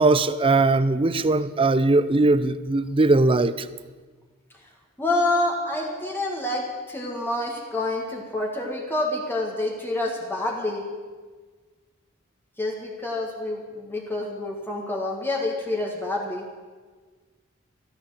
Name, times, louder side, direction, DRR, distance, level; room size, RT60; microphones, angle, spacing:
voice 1, 0.0-3.7, right 2 dB, 25° right, 0.5 m, -20 dB
voice 2, 5.0-10.8 12.6-16.4, left 2 dB, 10° left, 1.8 m, -27 dB
12.5 x 12.5 x 7.7 m
head